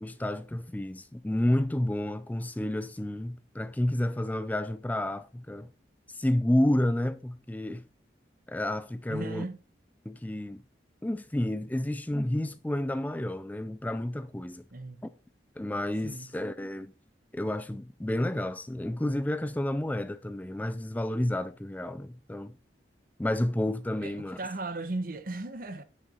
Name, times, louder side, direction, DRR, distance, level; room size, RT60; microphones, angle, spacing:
voice 1, 0.0-5.7 6.1-7.9 8.5-9.4 10.1-10.6 11.0-14.7 15.6-16.9 17.3-22.5 23.2-24.4, left 1 dB, 10° left, 0.3 m, -30 dB
voice 2, 9.1-9.6 14.7-15.0 16.0-16.3 24.0-25.8, right 2 dB, 50° right, 0.9 m, -36 dB
10.0 x 6.4 x 4.2 m
head